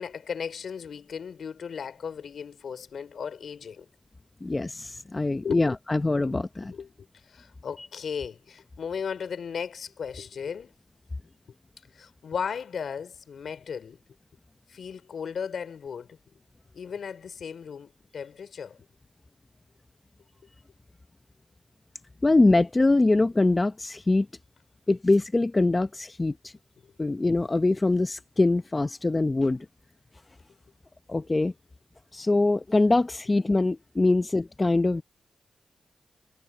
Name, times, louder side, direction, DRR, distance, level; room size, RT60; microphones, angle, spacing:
voice 1, 0.0-3.9 5.4-5.6 6.7-6.9 7.3-10.7 11.9-14.0 14.7-16.2 16.7-18.8 27.0-27.1, left 6 dB, 75° left, 3.4 m, -36 dB
voice 2, 4.4-6.7 7.8-7.9 22.2-24.3 24.9-26.5 27.0-29.7 31.1-31.5 32.1-35.0, left 2 dB, 30° left, 0.7 m, -23 dB
cardioid pair, 60°, 0 cm